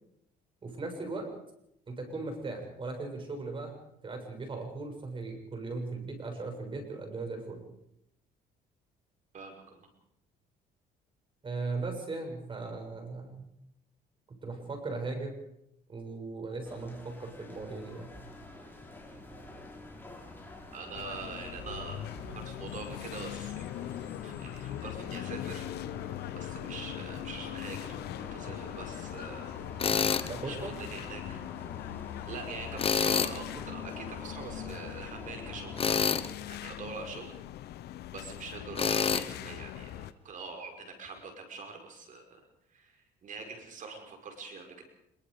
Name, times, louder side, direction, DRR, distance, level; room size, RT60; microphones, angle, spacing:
voice 1, 0.6-1.3 1.9-3.7 4.0-7.6 11.4-13.5 14.3-15.3 15.9-18.1 30.3-30.7, right 3 dB, 30° right, 4 dB, 7.0 m, -38 dB
voice 2, 9.3-9.9 20.7-22.1 22.3-23.6 24.2-25.7 26.3-29.5 30.4-31.4 32.3-35.9 36.4-37.3 38.1-42.4 42.7-44.8, right 4 dB, 50° right, 3 dB, 5.3 m, -44 dB
sound 1, 16.6-36.3, left 2 dB, 10° left, 6.0 m, -47 dB
sound 2, 20.9-40.1, left 13 dB, 75° left, 1.0 m, -41 dB
Tools, 29.8-30.3 32.8-33.4 35.8-36.3 38.8-39.2, left 6 dB, 35° left, 1.1 m, -27 dB
25.5 x 22.5 x 5.1 m, 0.77 s
cardioid pair, 110°, 17 cm